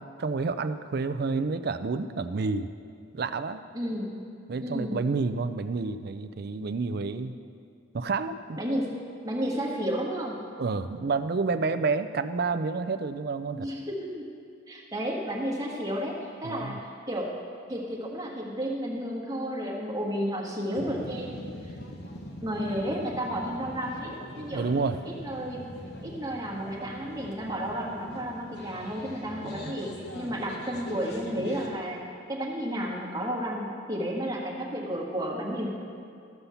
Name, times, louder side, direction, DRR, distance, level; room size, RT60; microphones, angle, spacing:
voice 1, 0.0-2.7 3.1-3.6 4.5-7.3 7.9-8.6 10.6-13.7 16.4-16.8 24.5-25.0 29.4-29.7, right 4 dB, 50° right, 10 dB, 0.4 m, -29 dB
voice 2, 3.7-4.3 4.6-5.0 8.6-8.9 9.2-10.4 13.6-14.2 14.7-17.3 17.7-21.7 22.4-24.7 25.0-25.7 26.0-32.0 32.3-35.7, equal, 20° right, -4 dB, 1.6 m, -32 dB
sound 1, 20.7-31.8, left 1 dB, 55° left, 1.1 m, -42 dB
13.0 x 5.7 x 6.8 m, 2.4 s
head